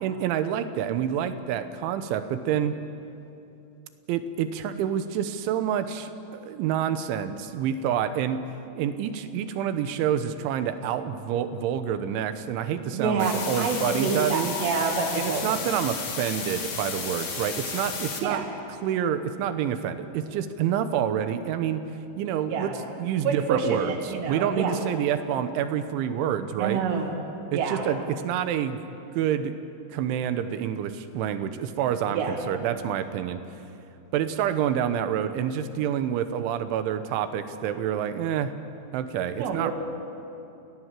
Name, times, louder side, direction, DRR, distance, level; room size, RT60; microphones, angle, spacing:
voice 1, 0.0-2.8 4.1-8.4 8.8-14.6 15.2-18.4 18.8-21.8 22.2-22.7 23.0-26.8 27.5-28.8 29.2-29.6 29.9-33.4 34.1-38.5 38.9-39.7, right 9 dB, 90° right, 10 dB, 3.5 m, -28 dB
voice 2, 12.9-15.6 18.2-18.5 22.5-22.7 23.2-24.8 26.6-27.1 27.5-27.9 32.1-32.4 39.4-39.7, right 5 dB, 70° right, 1 dB, 4.3 m, -27 dB
sound 1, 13.2-18.2, left 5 dB, 45° left, 2.7 m, -33 dB
29.0 x 17.5 x 7.6 m, 2.7 s
omnidirectional pair, 5.3 m